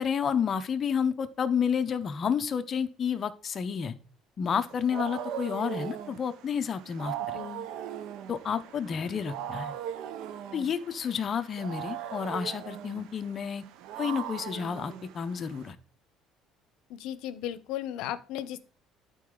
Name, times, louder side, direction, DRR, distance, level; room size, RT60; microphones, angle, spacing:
voice 1, 0.0-3.9 4.4-7.4 8.3-9.7 10.5-13.6 14.0-15.8, left 7 dB, 30° left, 10 dB, 0.6 m, -30 dB
Wild animals, 4.5-15.7, right 10 dB, 65° right, 0.6 m, -39 dB
voice 2, 7.3-7.7 16.9-18.6, left 11 dB, 70° left, 14 dB, 0.7 m, -36 dB
12.0 x 4.3 x 3.8 m, 0.38 s
cardioid pair, 165°, 0 cm